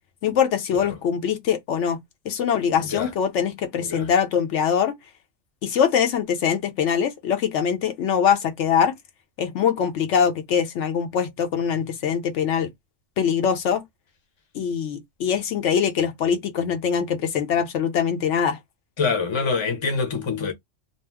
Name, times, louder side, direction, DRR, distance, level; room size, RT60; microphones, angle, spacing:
voice 1, 0.2-2.0 2.2-5.0 5.6-8.9 9.4-12.7 13.2-13.8 14.5-18.6, left 7 dB, 75° left, 0.9 m, -23 dB
voice 2, 19.0-20.5, left 5 dB, 30° left, 0.6 m, -25 dB
2.7 x 2.0 x 3.3 m
omnidirectional pair, 1.3 m